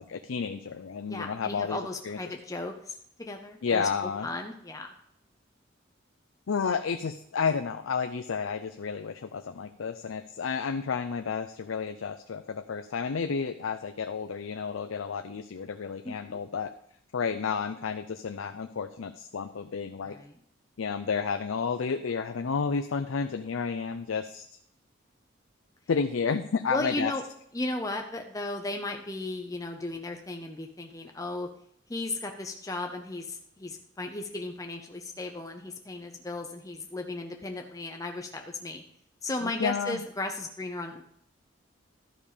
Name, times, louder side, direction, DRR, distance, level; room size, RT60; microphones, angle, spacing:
voice 1, 0.0-2.3 3.6-4.3 6.5-16.7 17.1-20.2 20.8-24.4 25.9-27.1 39.4-40.0, left 5 dB, 85° left, 8 dB, 0.5 m, -31 dB
voice 2, 1.1-3.9 4.2-4.9 16.0-16.4 20.0-20.3 26.7-27.2 27.5-31.5 31.9-38.8 39.2-41.1, left 2 dB, 15° left, 3 dB, 0.6 m, -35 dB
12.5 x 5.3 x 5.0 m, 0.68 s
head